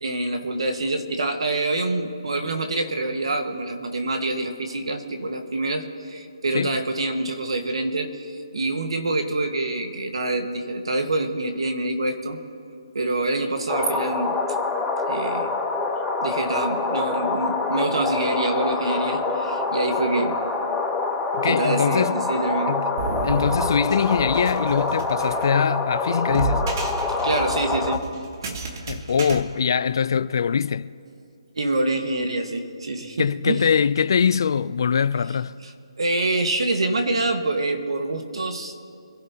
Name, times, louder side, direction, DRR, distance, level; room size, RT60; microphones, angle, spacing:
voice 1, 0.0-12.4 12.9-14.4 15.1-15.5 16.2-20.4 21.4-22.8 27.2-28.0 28.4-28.8 31.5-33.6 36.0-38.7, right 2 dB, 70° right, 1.6 m, -26 dB
sound 1, 13.7-28.0, left 3 dB, ahead, 0.8 m, -26 dB
voice 2, 21.3-22.3 22.7-23.0 23.2-26.7 28.9-30.9 33.2-35.6, left 6 dB, 45° left, 0.4 m, -22 dB
sound 2, 23.0-29.4, right 3 dB, 35° right, 1.4 m, -32 dB
26.0 x 12.5 x 2.9 m
hypercardioid pair, 165°, 3 cm